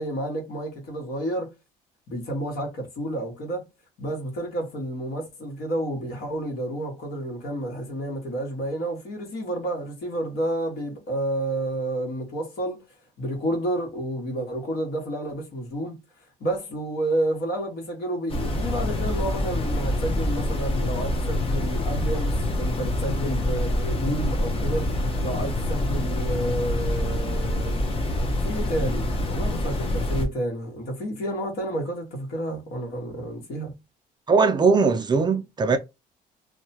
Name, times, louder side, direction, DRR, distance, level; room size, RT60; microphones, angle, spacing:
voice 1, 0.0-1.5 2.1-3.7 4.0-12.8 13.2-16.0 16.4-27.8 28.4-33.7, right 1 dB, 65° left, 1.5 m, -30 dB
sound 1, 18.3-30.3, left 1 dB, 35° left, 0.8 m, -26 dB
voice 2, 34.3-35.8, right 4 dB, 25° right, 0.4 m, -20 dB
2.7 x 2.3 x 2.8 m
cardioid pair, 110°, 17 cm